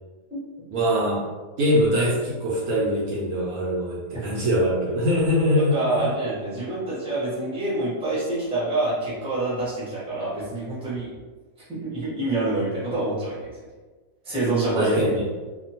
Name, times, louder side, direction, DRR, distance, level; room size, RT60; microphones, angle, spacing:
voice 1, 0.7-1.2 1.6-6.1 14.8-15.2, equal, 70° right, -5 dB, 1.0 m, -23 dB
voice 2, 5.6-11.1 11.7-13.5 14.2-15.0, right 2 dB, 5° right, -9 dB, 0.8 m, -26 dB
2.7 x 2.3 x 2.8 m, 1.3 s
omnidirectional pair, 1.8 m